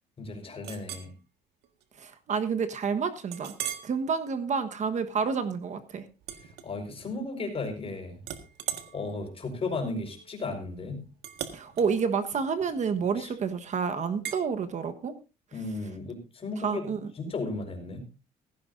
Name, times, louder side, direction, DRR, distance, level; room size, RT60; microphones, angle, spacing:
voice 1, 0.2-1.1 6.6-8.2 8.9-11.0 13.2-13.3 15.5-16.9 17.1-18.0, left 3 dB, 35° left, 4 dB, 4.8 m, -35 dB
Chink clink, 0.6-1.1 1.6-1.8 2.3-2.4 3.3-3.9 4.5-4.7 6.2-7.2 7.5-7.9 8.2-13.3 14.2-14.4, right 10 dB, 85° right, 1.6 m, -40 dB
voice 2, 2.0-3.5 3.8-6.0 11.5-15.1 16.6-17.0, right 6 dB, 45° right, 9 dB, 1.3 m, -29 dB
16.5 x 15.0 x 2.6 m, 0.29 s
cardioid pair, 110°, 17 cm